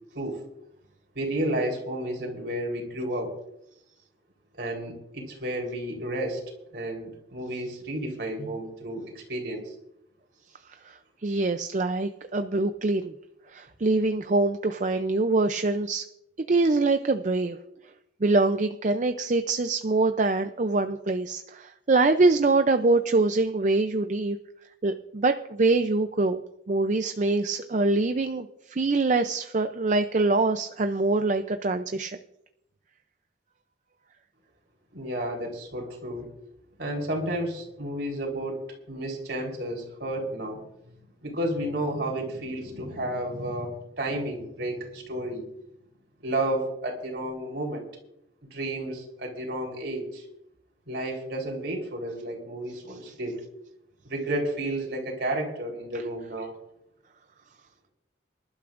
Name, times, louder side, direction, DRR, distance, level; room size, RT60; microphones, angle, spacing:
voice 1, 1.2-3.3 4.5-6.4 6.7-9.7 34.9-36.3 36.8-40.6 40.8-40.9 41.2-45.5 46.2-47.9 48.5-50.3 50.9-53.4 54.0-56.5, right 1 dB, 60° right, 1 dB, 3.8 m, -31 dB
voice 2, 10.8-13.1 13.5-16.0 16.4-17.6 18.2-24.4 24.8-26.4 26.7-32.2, right 3 dB, 40° right, 8 dB, 0.5 m, -24 dB
25.5 x 12.0 x 2.5 m, 0.83 s
head